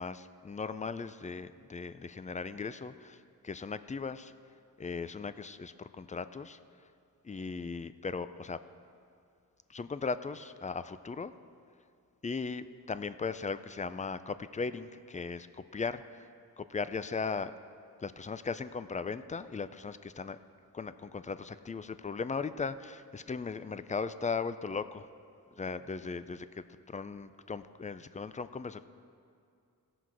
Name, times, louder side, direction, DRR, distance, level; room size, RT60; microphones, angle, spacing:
voice 1, 0.0-3.2 3.4-4.3 4.8-6.6 7.2-8.6 9.7-11.3 12.2-16.0 16.6-17.5 18.0-20.4 20.7-25.1 25.6-26.6 26.9-28.8, left 4 dB, 20° left, 13 dB, 0.3 m, -37 dB
17.0 x 5.9 x 4.7 m, 2.4 s
cardioid pair, 70°, 39 cm